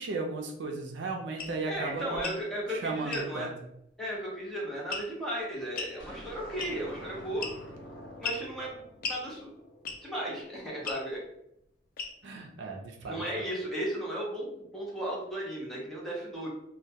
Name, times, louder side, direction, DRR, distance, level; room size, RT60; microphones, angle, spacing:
voice 1, 0.0-2.3 2.7-3.5 12.2-13.4, right 3 dB, 70° right, 1 dB, 0.4 m, -35 dB
sound 1, 1.4-1.6 2.1-2.4 3.1-3.3 4.9-5.2 5.8-6.0 6.6-6.9 7.4-7.8 8.2-8.5 9.0-9.2 9.9-10.2 10.8-11.0 12.0-12.3, left 4 dB, 50° left, 0.3 m, -36 dB
voice 2, 1.6-3.5 4.0-7.5 8.2-9.5 10.0-11.2 13.1-16.5, right 1 dB, ahead, -5 dB, 0.6 m, -35 dB
sound 2, 6.0-10.4, equal, 75° left, 1.1 m, -47 dB
2.2 x 2.1 x 2.7 m, 0.78 s
head